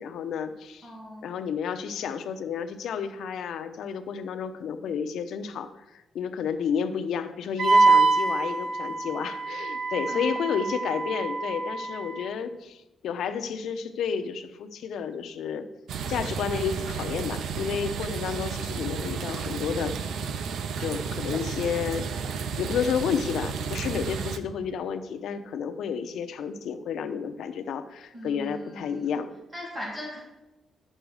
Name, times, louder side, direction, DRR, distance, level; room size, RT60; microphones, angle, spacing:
voice 1, 0.0-0.9 1.2-15.7 16.1-20.3 20.8-29.3, left 7 dB, 85° left, 9 dB, 0.8 m, -31 dB
voice 2, 0.8-1.3 10.1-10.3 28.1-29.1 29.5-30.2, equal, 20° right, -5 dB, 2.6 m, -39 dB
Wind instrument woodwind instrument, 7.6-12.2, right 3 dB, 50° right, 1.1 m, -24 dB
sound 1, 15.9-24.4, right 6 dB, 80° right, 0.7 m, -32 dB
11.5 x 7.7 x 4.9 m, 0.98 s
wide cardioid pair, 150°, 0 cm